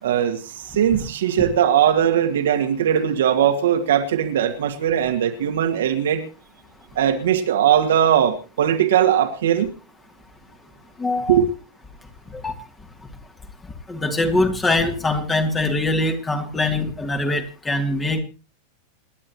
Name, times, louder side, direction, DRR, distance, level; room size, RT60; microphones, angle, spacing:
voice 1, 0.0-6.2 7.0-9.7 11.3-11.5, right 9 dB, 60° right, 5 dB, 2.3 m, -19 dB
voice 2, 11.0-11.4 12.3-12.5 13.9-18.2, left 2 dB, 15° left, 5 dB, 2.8 m, -23 dB
28.5 x 11.0 x 3.1 m, 0.34 s
figure-of-eight pair, 90°, 0 cm